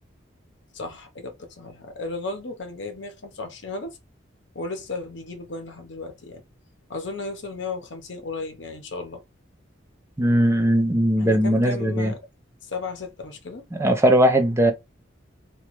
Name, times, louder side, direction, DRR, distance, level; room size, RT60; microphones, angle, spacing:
voice 1, 0.7-4.0 4.5-6.4 6.9-9.2 11.2-12.2 12.7-13.6, left 3 dB, 65° left, 0.7 m, -34 dB
voice 2, 10.2-12.1 13.8-14.7, equal, 15° right, 0.4 m, -19 dB
3.0 x 2.3 x 3.0 m
head